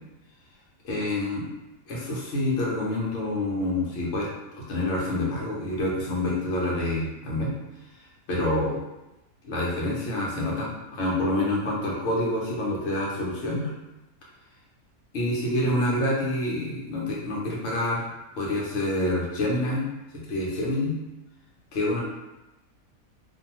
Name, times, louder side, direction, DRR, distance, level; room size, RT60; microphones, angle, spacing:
voice 1, 0.8-1.5 1.9-7.5 8.3-8.8 9.4-13.7 15.1-18.0 18.3-19.9 20.3-20.9 21.7-22.0, left 1 dB, 55° left, -4 dB, 0.9 m, -27 dB
2.6 x 2.3 x 2.9 m, 0.99 s
omnidirectional pair, 1.6 m